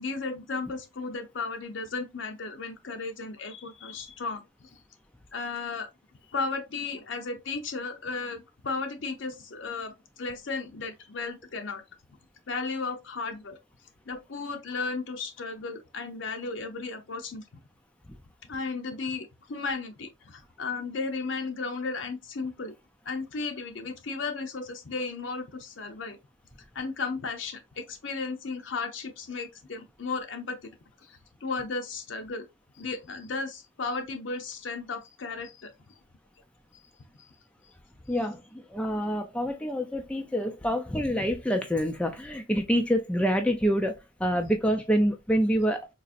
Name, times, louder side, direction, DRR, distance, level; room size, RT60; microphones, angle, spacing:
voice 1, 0.0-4.7 5.3-5.9 6.3-11.8 12.5-13.6 14.1-17.4 18.5-22.7 23.0-26.2 26.7-30.7 31.0-32.5 32.7-35.7 36.7-36.8 37.2-37.3, left 4 dB, 70° left, 0.7 m, -35 dB
voice 2, 38.1-45.8, equal, 5° left, 0.3 m, -27 dB
4.0 x 2.5 x 2.4 m
head